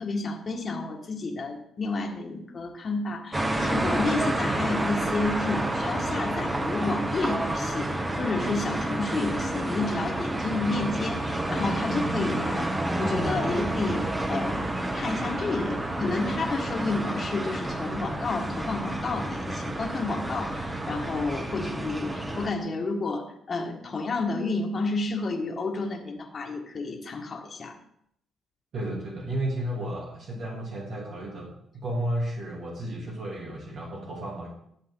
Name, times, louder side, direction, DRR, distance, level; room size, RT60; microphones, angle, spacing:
voice 1, 0.0-27.8, left 3 dB, 40° left, 1 dB, 1.7 m, -31 dB
sound 1, 3.3-22.5, right 1 dB, 20° right, 1.3 m, -29 dB
voice 2, 28.7-34.5, right 1 dB, 60° right, -3 dB, 2.9 m, -33 dB
13.0 x 7.5 x 3.8 m, 0.72 s
cardioid pair, 90°, 0 cm